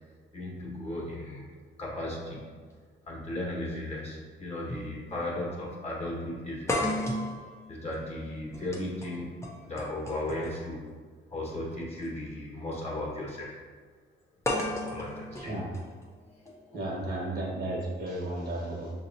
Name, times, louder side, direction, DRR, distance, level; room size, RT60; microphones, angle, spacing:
voice 1, 0.3-1.5 1.8-2.5 3.1-6.9 7.7-10.9 11.3-13.5 14.7-15.6 16.4-16.8, left 1 dB, 30° left, -4 dB, 1.5 m, -36 dB
sound 1, 4.7-4.9 5.2-5.3 6.7-10.7 11.9-12.1 14.4-16.5, left 1 dB, 15° left, 0.7 m, -34 dB
voice 2, 15.4-15.7 16.7-18.9, right 1 dB, 55° right, -2 dB, 1.2 m, -33 dB
6.3 x 2.8 x 2.7 m, 1.5 s
cardioid pair, 90°, 20 cm